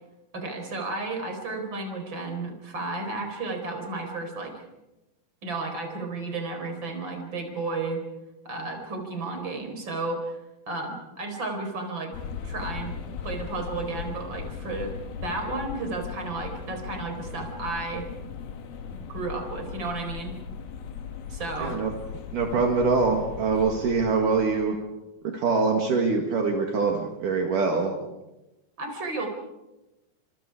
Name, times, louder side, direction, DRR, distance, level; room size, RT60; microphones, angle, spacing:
voice 1, 0.3-4.6 5.4-8.0 8.4-10.4 10.7-12.1 12.4-12.9 13.2-14.9 15.2-18.1 18.9-20.3 21.3-21.8 28.8-29.3, right 3 dB, 30° right, 4 dB, 4.8 m, -33 dB
sound 1, 12.1-24.8, left 6 dB, 80° left, 3.6 m, -38 dB
voice 2, 21.6-21.9 22.3-24.8 25.2-27.9, right 4 dB, 65° right, 2 dB, 3.4 m, -24 dB
30.0 x 26.0 x 4.9 m, 1.0 s
omnidirectional pair, 4.3 m